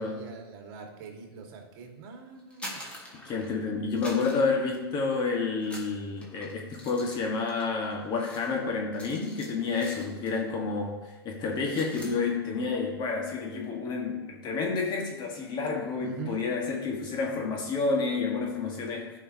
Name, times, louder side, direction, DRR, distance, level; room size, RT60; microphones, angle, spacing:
voice 1, 0.0-2.9 16.0-16.5, right 6 dB, 55° right, 2 dB, 1.9 m, -43 dB
sound 1, 2.4-3.6 4.0-5.2 5.6-10.5 10.8-11.1 11.4-12.2, equal, 10° left, 1.8 m, -46 dB
voice 2, 3.2-10.9 11.2-19.1, left 4 dB, 35° left, 0 dB, 1.5 m, -29 dB
13.5 x 5.5 x 2.8 m, 1.2 s
hypercardioid pair, 115°, 13 cm